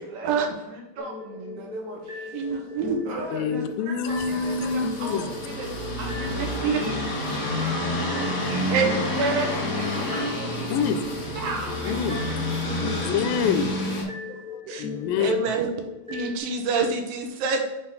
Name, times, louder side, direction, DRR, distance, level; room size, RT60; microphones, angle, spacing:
voice 1, 0.0-8.9 9.4-9.5 9.7-10.8 11.0-12.8, right 3 dB, 60° right, 0 dB, 2.5 m, -39 dB
sound 1, 1.0-16.4, left 4 dB, 5° right, 1.1 m, -39 dB
voice 2, 2.3-3.6 6.6-6.8 8.7-9.5 14.7-14.9 15.2-15.7 16.1-17.6, right 4 dB, 80° right, 4 dB, 2.7 m, -26 dB
voice 3, 3.3-5.2 10.7-11.0 11.9-12.2 12.8-13.7 14.0-14.1 14.8-15.3, left 6 dB, 85° left, 11 dB, 2.3 m, -26 dB
sound 2, 4.1-14.0, left 1 dB, 40° left, 1.2 m, -29 dB
6.6 x 4.3 x 5.5 m, 0.92 s
omnidirectional pair, 4.0 m